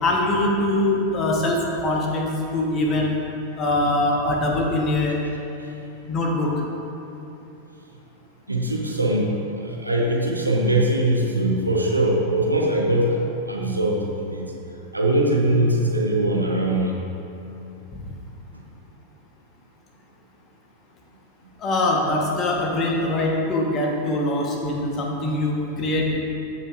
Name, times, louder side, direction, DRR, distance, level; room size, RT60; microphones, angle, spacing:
voice 1, 0.0-3.1 3.6-5.2 6.1-6.5 21.6-26.2, left 1 dB, 30° left, 0 dB, 1.2 m, -23 dB
voice 2, 8.5-9.3 9.6-13.2 13.5-14.5 14.9-16.9, right 1 dB, 85° right, -1 dB, 1.0 m, -21 dB
14.0 x 5.5 x 2.6 m, 2.9 s
figure-of-eight pair, 90°, 0 cm